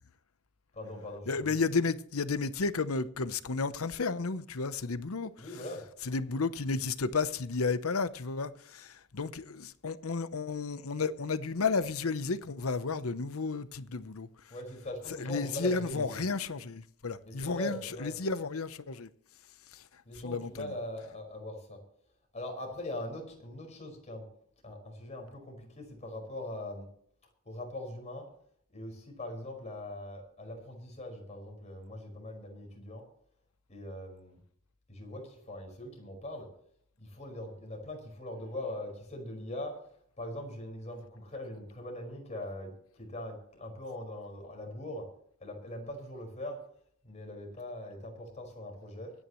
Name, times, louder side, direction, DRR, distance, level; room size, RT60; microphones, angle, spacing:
voice 1, 0.7-1.6 5.4-5.9 14.5-16.2 17.2-18.2 20.0-21.8 22.3-24.2 24.6-26.9 27.4-28.3 28.7-33.0 33.7-34.4 34.9-36.5 37.0-39.8 40.2-45.1 45.4-46.6 47.0-49.1, left 1 dB, 30° left, 5.2 m, -41 dB
voice 2, 1.3-5.3 6.0-14.5 15.2-19.1 19.7-19.8 20.2-20.7, left 4 dB, 70° left, 0.8 m, -32 dB
24.5 x 9.9 x 3.1 m
head